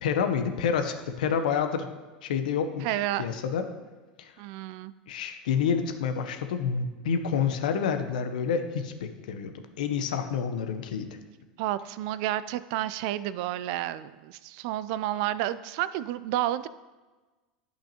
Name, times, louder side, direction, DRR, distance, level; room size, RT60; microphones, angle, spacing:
voice 1, 0.0-1.9 2.2-3.6 4.2-4.3 5.1-11.1, left 7 dB, 75° left, 7 dB, 0.7 m, -28 dB
voice 2, 2.8-3.3 4.4-4.9 11.6-16.7, right 13 dB, 60° right, 15 dB, 0.3 m, -30 dB
11.0 x 5.7 x 2.9 m, 1.2 s
hypercardioid pair, 85°, 4 cm